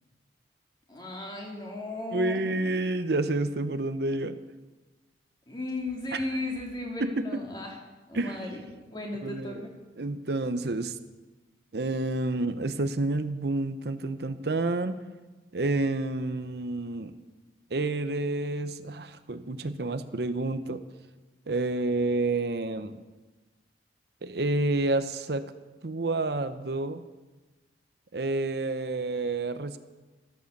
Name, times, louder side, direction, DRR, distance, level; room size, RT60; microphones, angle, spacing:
voice 1, 0.9-2.4 5.5-7.7 8.1-9.7, left 2 dB, 25° left, -1 dB, 2.9 m, -35 dB
voice 2, 2.1-4.4 6.1-6.3 7.0-7.4 8.1-8.5 9.2-9.7 10.0-11.0 11.7-15.0 15.5-17.1 17.7-20.8 21.5-23.0 24.2-25.4 25.8-27.0 28.1-29.8, right 2 dB, 60° right, 10 dB, 0.7 m, -29 dB
13.5 x 13.0 x 6.7 m, 1.2 s
head